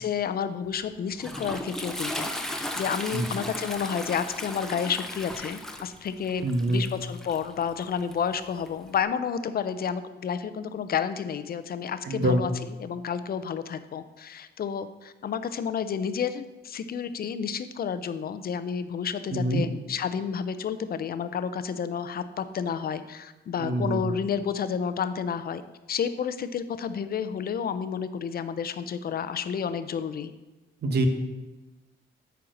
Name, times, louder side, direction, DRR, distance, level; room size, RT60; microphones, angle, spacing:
voice 1, 0.0-25.6 25.9-30.3, left 7 dB, 50° left, 12 dB, 0.7 m, -30 dB
Toilet flush, 0.7-9.0, left 1 dB, ahead, 0.9 m, -37 dB
voice 2, 6.4-6.9 12.0-12.4 19.3-19.6 23.6-24.0 30.8-31.1, right 1 dB, 55° right, 6 dB, 1.3 m, -25 dB
8.7 x 4.6 x 6.5 m, 1.1 s
cardioid pair, 90°, 20 cm